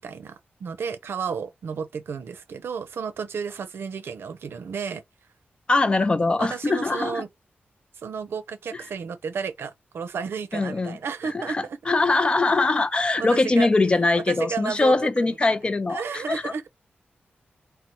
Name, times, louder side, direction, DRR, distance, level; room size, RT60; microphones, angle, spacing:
voice 1, 0.0-5.0 6.4-7.3 8.0-11.8 13.2-13.7 14.2-15.5 15.9-16.7, right 6 dB, 80° right, 0.5 m, -32 dB
voice 2, 5.7-7.2 10.5-11.0 11.3-16.5, left 3 dB, 25° left, 0.3 m, -22 dB
4.0 x 2.0 x 2.9 m
wide cardioid pair, 150°, 4 cm